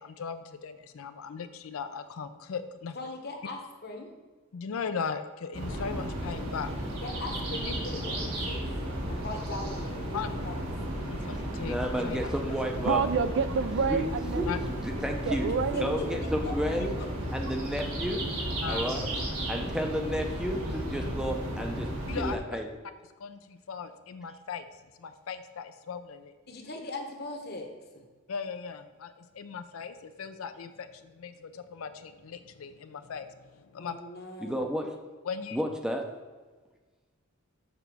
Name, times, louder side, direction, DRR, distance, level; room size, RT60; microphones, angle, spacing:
voice 1, 0.0-3.0 4.5-6.7 10.1-10.3 11.1-12.3 14.5-14.6 16.8-16.9 18.6-19.0 22.1-22.4 23.2-24.7 25.0-26.3 28.3-34.0 35.3-35.6, left 6 dB, 70° left, 10 dB, 0.4 m, -38 dB
voice 2, 2.9-4.1 7.0-8.7 9.1-10.6 15.4-16.1 16.7-16.8 26.5-28.0 33.8-34.6, left 2 dB, 50° left, 3 dB, 1.0 m, -40 dB
sound 1, 5.5-22.3, right 1 dB, 85° right, 1.8 m, -34 dB
voice 3, 11.3-13.1 13.9-14.0 14.3-15.5 15.8-17.0 17.3-18.2 18.7-19.0 19.5-21.9 22.2-22.7 34.4-34.9 35.5-36.0, equal, 5° right, 3 dB, 0.6 m, -32 dB
voice 4, 12.9-14.8 15.3-16.2, right 6 dB, 55° right, 12 dB, 0.4 m, -29 dB
6.8 x 3.9 x 6.0 m, 1.3 s
head